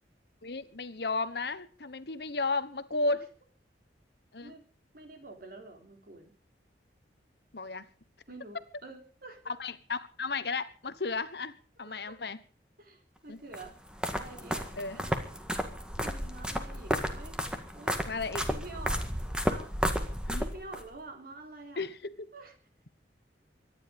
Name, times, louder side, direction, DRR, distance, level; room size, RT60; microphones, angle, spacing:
voice 1, 0.4-3.3 4.3-4.5 7.5-7.8 9.5-12.4 13.3-13.4 14.8-15.0 18.0-18.5 20.3-20.4 21.8-22.3, left 3 dB, 65° left, 14 dB, 1.2 m, -34 dB
voice 2, 4.9-6.3 8.3-9.4 11.8-12.2 12.8-13.7 14.1-14.7 14.9-15.2 16.0-17.3 17.7-18.0 18.5-19.1 19.5-19.7 20.4-21.9 22.3-22.5, right 2 dB, 55° right, 4 dB, 4.0 m, -47 dB
sound 1, 13.5-20.8, equal, 5° right, 1.9 m, -33 dB
24.0 x 10.5 x 5.3 m, 0.40 s
head